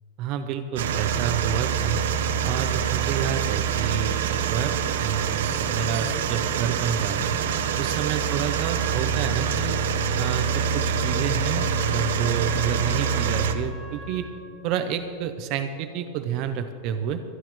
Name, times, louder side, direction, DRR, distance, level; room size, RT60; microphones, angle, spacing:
voice 1, 0.2-2.1 2.4-7.4 7.8-9.8 10.2-14.3 14.6-17.2, right 8 dB, 35° right, 8 dB, 0.6 m, -29 dB
sound 1, 0.8-13.5, right 7 dB, 75° right, 0.9 m, -25 dB
Trumpet, 8.3-14.5, right 2 dB, 10° right, 1.6 m, -44 dB
23.0 x 12.0 x 3.1 m, 2.5 s
supercardioid pair, 175°, 0 cm